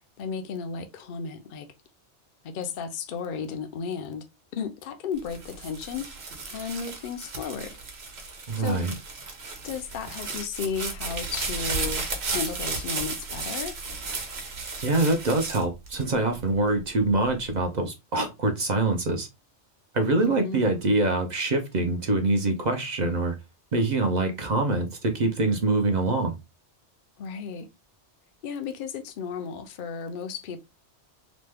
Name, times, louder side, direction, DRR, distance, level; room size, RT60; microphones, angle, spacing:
voice 1, 0.2-1.7 2.4-4.3 4.6-6.1 6.5-7.8 8.6-8.8 9.6-13.8 20.2-20.7 27.2-27.7 28.4-30.6, left 6 dB, 60° left, 0.6 m, -34 dB
sound 1, 5.2-16.5 17.1-17.6, right 4 dB, 65° right, 1.1 m, -34 dB
voice 2, 8.5-8.9 14.8-19.3 19.9-23.3 23.7-26.3, right 2 dB, 50° right, 0.6 m, -24 dB
3.0 x 2.1 x 3.3 m
omnidirectional pair, 1.2 m